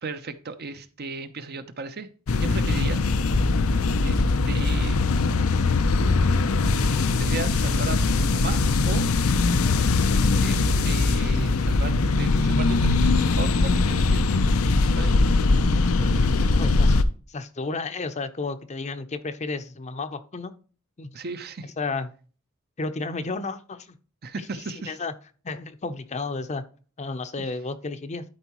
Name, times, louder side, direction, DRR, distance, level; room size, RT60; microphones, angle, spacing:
voice 1, 0.0-2.1 2.4-3.2 4.0-5.1 7.1-9.0 10.4-14.5 15.0-15.2 15.9-16.4 21.1-21.7 24.2-25.0 27.4-27.5, right 3 dB, 50° right, 0.7 m, -36 dB
sound 1, 2.3-17.0, left 3 dB, 90° left, 0.6 m, -21 dB
voice 2, 16.6-17.0 17.3-20.5 21.0-21.1 21.6-22.1 22.8-24.0 24.9-25.1 25.4-26.6 27.0-28.2, left 3 dB, 35° left, 0.6 m, -32 dB
12.0 x 4.6 x 3.0 m
head